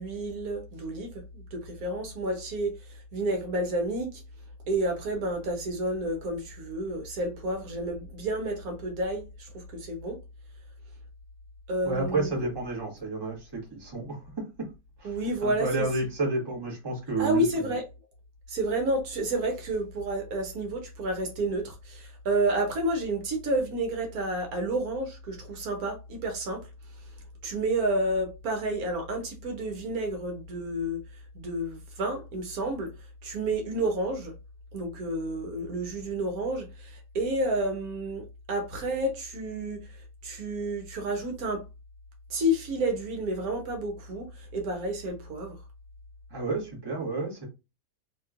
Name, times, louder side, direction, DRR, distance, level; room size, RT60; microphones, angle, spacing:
voice 1, 0.0-4.2 4.7-10.2 11.7-12.3 15.0-15.9 17.2-17.8 18.5-26.6 27.4-31.0 31.3-32.9 33.2-34.3 34.7-41.6 42.3-45.6, right 1 dB, 75° right, 1.2 m, -30 dB
voice 2, 11.8-14.7 15.0-17.7 46.3-47.5, right 2 dB, 20° right, 1.0 m, -31 dB
3.0 x 2.9 x 2.4 m
omnidirectional pair, 1.6 m